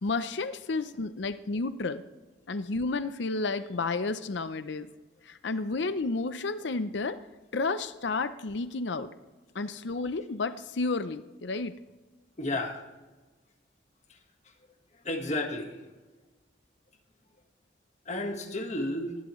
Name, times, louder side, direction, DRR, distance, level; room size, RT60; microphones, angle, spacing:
voice 1, 0.0-2.0 2.5-4.9 5.2-7.2 7.5-9.1 9.5-11.8, left 3 dB, 70° left, 11 dB, 0.6 m, -31 dB
voice 2, 12.4-12.8 14.1-14.2 14.4-14.5 14.9-15.8 18.0-19.2, left 1 dB, 40° left, 4 dB, 1.5 m, -32 dB
19.5 x 14.5 x 3.1 m, 1.2 s
head